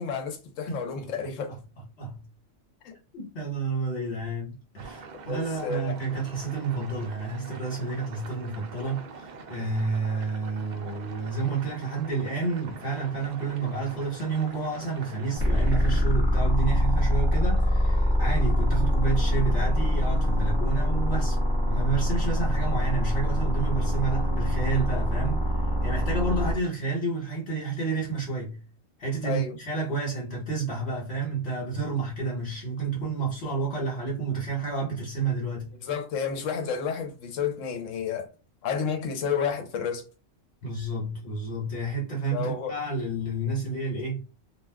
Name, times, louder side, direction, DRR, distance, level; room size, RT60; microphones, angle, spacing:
voice 1, 0.0-1.5 2.8-2.9 5.3-5.9 18.2-18.4 29.2-29.5 35.8-38.3 38.6-40.0 42.3-42.7, left 6 dB, 80° left, 1.1 m, -31 dB
voice 2, 3.1-21.4 21.6-25.4 25.8-28.6 29.0-35.7 40.6-44.2, right 3 dB, 60° left, 1.4 m, -30 dB
sound 1, 4.8-16.0, right 4 dB, 65° right, 0.4 m, -44 dB
sound 2, 15.4-26.5, equal, 20° right, 1.0 m, -24 dB
2.4 x 2.3 x 3.4 m
omnidirectional pair, 1.3 m